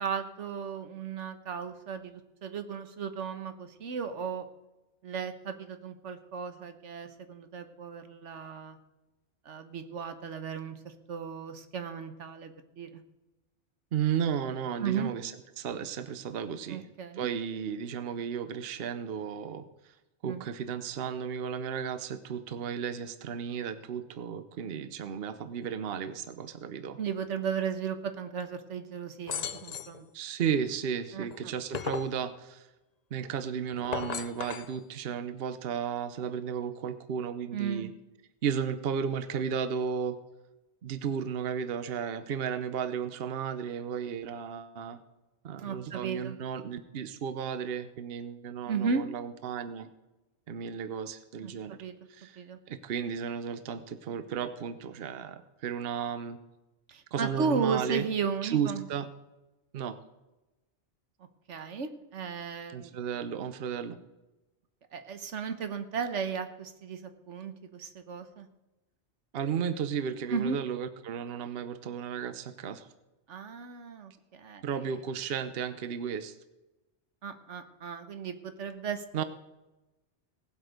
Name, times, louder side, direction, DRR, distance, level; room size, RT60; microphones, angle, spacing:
voice 1, 0.0-4.5 5.0-8.8 9.4-13.0 14.8-15.1 16.7-17.3 20.3-20.5 27.0-30.1 31.1-31.5 37.5-37.9 45.6-46.4 48.7-49.1 51.4-51.9 52.4-52.6 56.9-58.8 61.5-63.0 64.9-68.5 70.3-70.6 73.3-74.9 77.2-79.2, right 6 dB, 85° right, 8 dB, 1.3 m, -35 dB
voice 2, 13.9-16.9 17.1-19.9 20.2-27.0 30.1-32.7 33.1-37.9 38.4-40.2 40.8-45.0 45.4-49.9 50.5-51.8 52.1-52.4 52.7-56.4 57.1-58.0 58.4-59.1 59.7-60.0 62.7-64.0 69.3-72.9 74.6-76.4 79.1-79.2, right 7 dB, 60° right, 11 dB, 0.9 m, -34 dB
sound 1, 29.3-30.0 31.3-32.2 33.7-34.7, left 7 dB, 50° left, 0.5 m, -36 dB
18.0 x 7.8 x 5.1 m, 1.0 s
omnidirectional pair, 1.2 m